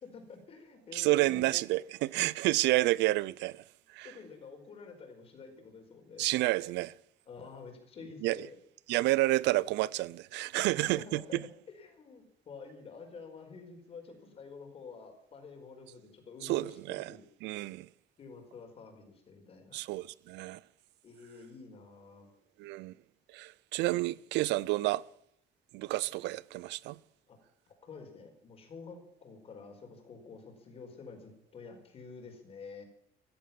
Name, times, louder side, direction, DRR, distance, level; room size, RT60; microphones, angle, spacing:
voice 1, 0.1-1.5 4.0-6.3 7.3-8.6 10.6-11.5 11.7-17.2 18.2-19.8 21.0-22.3 27.3-27.4 27.8-32.8, left 4 dB, 35° left, 4.7 m, -49 dB
voice 2, 0.9-3.6 3.9-4.1 6.2-6.9 8.2-8.4 8.9-11.4 16.4-17.2 17.4-17.9 19.7-20.6 22.6-22.9 23.3-25.0 25.7-27.0, right 18 dB, 80° right, 0.6 m, -30 dB
15.0 x 14.5 x 5.9 m
cardioid pair, 175°, 18 cm